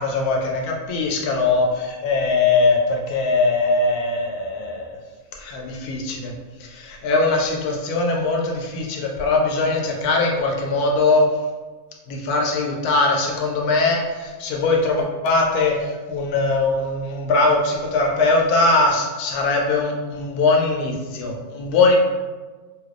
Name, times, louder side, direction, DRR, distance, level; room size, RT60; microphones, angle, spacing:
voice 1, 0.0-5.0 5.4-6.3 6.6-11.2 12.1-22.0, left 3 dB, 90° left, 1 dB, 1.1 m, -21 dB
3.3 x 2.7 x 2.4 m, 1.3 s
omnidirectional pair, 1.6 m